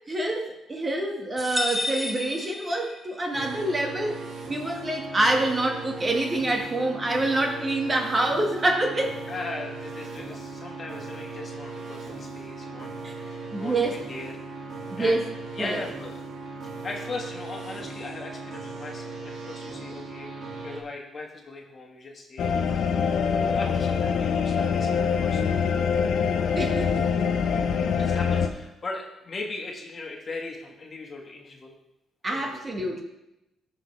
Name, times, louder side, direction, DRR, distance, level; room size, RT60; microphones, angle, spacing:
voice 1, 0.1-4.2 4.5-9.2 13.0-13.1 13.5-14.0 14.9-15.2 15.6-15.8 26.6-27.3 28.0-28.1 32.2-33.0, right 2 dB, 25° right, 1 dB, 1.7 m, -26 dB
sound 1, 1.4-3.3, left 1 dB, 10° left, 0.8 m, -31 dB
sound 2, 3.3-20.8, right 3 dB, 70° right, 2.4 m, -38 dB
voice 2, 9.3-12.9 13.2-13.7 14.1-14.4 15.0-15.2 15.5-16.2 16.6-22.9 23.5-25.4 27.9-31.7 32.3-32.6, left 3 dB, 40° left, 1 dB, 1.7 m, -38 dB
sound 3, 22.4-28.5, left 6 dB, 70° left, 0.8 m, -24 dB
15.0 x 5.7 x 3.4 m, 0.91 s
cardioid pair, 90°, 0 cm